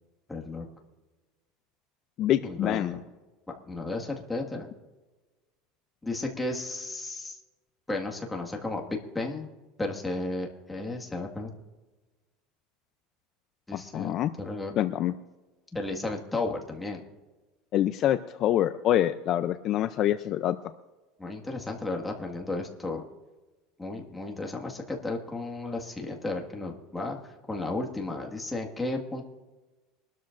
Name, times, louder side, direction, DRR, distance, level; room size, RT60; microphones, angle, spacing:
voice 1, 0.3-0.7 2.4-3.0 3.7-4.7 6.0-7.4 7.9-9.5 9.8-11.5 13.7-14.7 15.7-17.0 21.2-23.0 23.8-29.2, left 2 dB, 10° left, 1 dB, 1.8 m, -34 dB
voice 2, 2.2-3.0 13.7-14.3 14.8-15.1 17.7-20.6, left 12 dB, 45° left, 10 dB, 0.5 m, -26 dB
24.0 x 12.5 x 2.6 m, 1.2 s
supercardioid pair, 145°, 0 cm